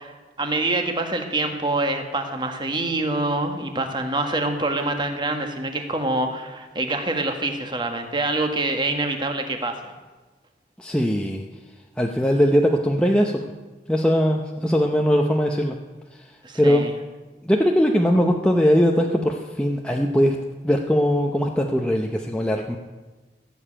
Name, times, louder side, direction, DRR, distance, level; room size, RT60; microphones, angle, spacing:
voice 1, 0.0-9.9 16.4-16.9, right 2 dB, 25° right, 5 dB, 1.5 m, -26 dB
voice 2, 10.8-11.4 12.0-13.5 13.9-15.8 16.1-16.8 17.4-20.4 20.6-22.8, equal, 5° left, 1 dB, 0.7 m, -20 dB
16.0 x 7.2 x 8.8 m, 1.3 s
head